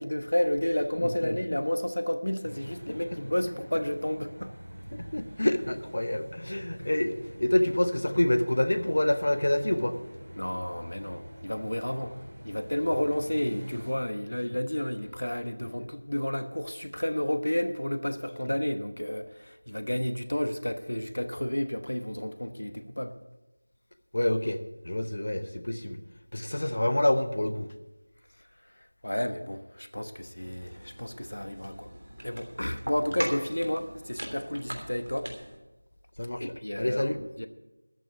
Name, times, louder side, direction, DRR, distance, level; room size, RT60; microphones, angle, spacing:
voice 1, 0.0-4.5 6.8-6.9 10.4-12.2 12.4-23.1 28.8-31.9 32.2-35.3 36.4-37.5, left 1 dB, 85° left, 9 dB, 1.1 m, -31 dB
sound 1, 2.4-13.9, equal, 85° right, 4.5 m, -45 dB
voice 2, 5.0-9.9 24.1-24.6 24.8-26.0 26.3-27.7 36.2-36.4 36.8-37.2, left 1 dB, 45° left, 11 dB, 0.9 m, -27 dB
sound 2, 30.4-35.6, right 1 dB, 65° right, 3.2 m, -40 dB
13.5 x 6.5 x 8.8 m, 1.0 s
figure-of-eight pair, 180°, 0 cm